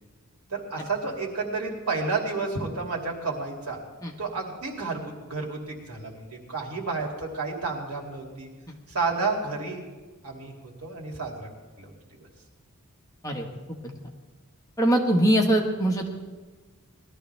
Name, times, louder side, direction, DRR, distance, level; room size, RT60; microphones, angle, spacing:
voice 1, 0.5-3.8 4.2-8.5 8.9-9.8 10.2-10.5 10.8-11.5 11.8-11.9, right 3 dB, 80° right, -1 dB, 2.8 m, -31 dB
voice 2, 14.8-16.1, right 1 dB, 15° left, 0 dB, 1.5 m, -22 dB
20.0 x 13.0 x 3.4 m, 1.3 s
head